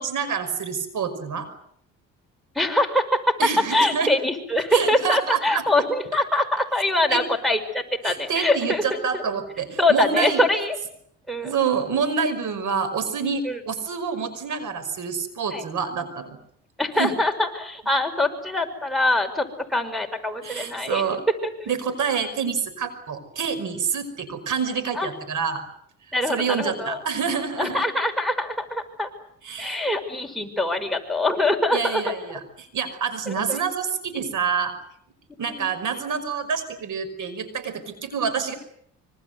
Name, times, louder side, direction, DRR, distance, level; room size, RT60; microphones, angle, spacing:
voice 1, 0.0-1.5 3.4-4.1 4.7-5.6 7.1-7.2 8.0-10.4 11.4-16.4 17.0-17.1 20.4-21.2 21.7-25.6 26.3-27.8 29.5-29.8 31.7-34.7 35.4-38.6, right 6 dB, 65° right, 12 dB, 5.5 m, -27 dB
voice 2, 2.5-3.4 3.7-9.2 9.8-10.8 11.3-11.5 13.4-13.6 15.5-15.6 16.8-21.0 21.4-21.7 24.9-25.1 26.1-27.0 27.6-29.1 29.6-32.1 33.3-33.6 35.5-35.7, left 1 dB, ahead, 11 dB, 5.7 m, -24 dB
26.0 x 24.5 x 8.0 m, 0.68 s
supercardioid pair, 75°, 34 cm